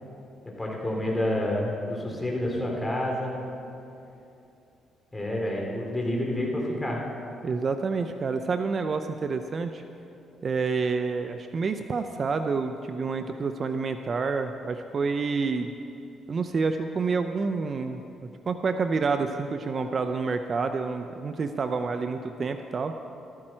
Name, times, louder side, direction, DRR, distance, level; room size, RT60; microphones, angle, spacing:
voice 1, 0.4-3.3 5.1-7.0, left 1 dB, 10° left, -2 dB, 3.2 m, -29 dB
voice 2, 7.4-9.8 10.4-15.7 16.3-18.0 18.5-22.9, right 4 dB, 45° right, 7 dB, 0.5 m, -28 dB
14.5 x 13.5 x 4.4 m, 2.7 s
cardioid pair, 90°, 0 cm